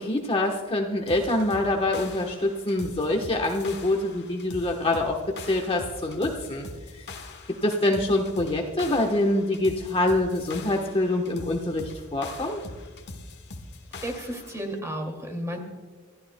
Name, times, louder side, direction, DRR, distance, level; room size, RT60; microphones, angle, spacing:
voice 1, 0.0-6.7 6.9-7.1 7.6-12.6, left 1 dB, 25° left, 2 dB, 1.1 m, -25 dB
sound 1, 1.1-14.6, left 3 dB, 50° left, 1.4 m, -42 dB
voice 2, 14.0-15.6, right 1 dB, 15° right, 3 dB, 2.3 m, -33 dB
27.0 x 14.5 x 2.2 m, 1.4 s
head